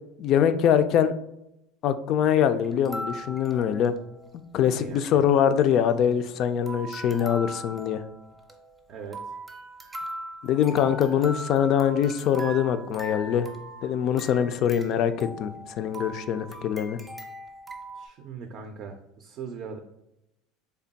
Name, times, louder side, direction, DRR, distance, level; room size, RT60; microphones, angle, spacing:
voice 1, 0.2-1.1 1.8-4.0 4.5-8.0 10.4-13.5 13.8-17.0, left 9 dB, 50° left, 11 dB, 0.3 m, -23 dB
sound 1, 2.6-4.3 4.6-4.7 4.9-5.1 5.6-6.4 6.7-18.1, right 1 dB, 10° right, 0.6 m, -40 dB
voice 2, 4.7-5.2 8.9-9.4 17.9-19.8, right 6 dB, 50° right, 4 dB, 0.4 m, -40 dB
3.4 x 2.2 x 3.9 m, 0.83 s
supercardioid pair, 110°, 0 cm